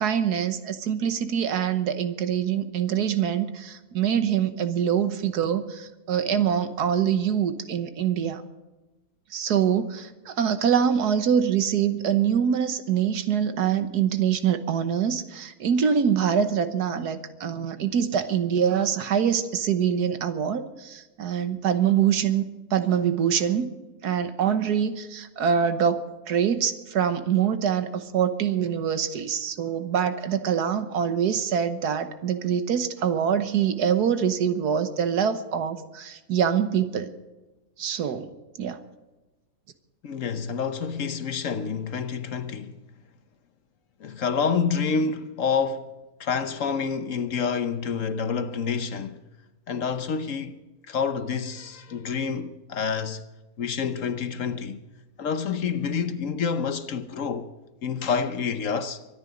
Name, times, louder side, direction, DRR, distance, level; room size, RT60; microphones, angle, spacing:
voice 1, 0.0-8.4 9.3-22.4 22.7-23.7 24.0-37.1 37.8-38.3 38.6-38.8, right 8 dB, 80° right, 1.6 m, -24 dB
voice 2, 40.0-42.7 44.0-45.9 46.2-49.2 49.7-50.6 50.9-53.2 53.6-54.8 55.2-57.5 57.8-59.0, left 6 dB, 60° left, 1.2 m, -28 dB
24.0 x 9.8 x 5.1 m
omnidirectional pair, 1.7 m